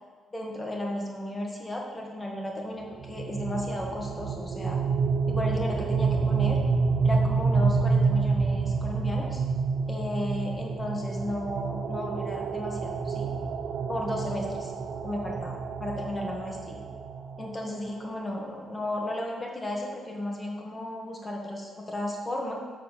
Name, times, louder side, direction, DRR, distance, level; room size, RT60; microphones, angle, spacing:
voice 1, 0.3-4.8 5.3-6.6 7.0-9.4 9.9-13.3 13.9-14.7 15.0-16.8 17.4-22.5, left 1 dB, 20° left, -1 dB, 1.7 m, -34 dB
sound 1, 3.0-17.9, right 4 dB, 55° right, 0.5 m, -28 dB
6.9 x 4.7 x 5.7 m, 1.5 s
cardioid pair, 90°, 0 cm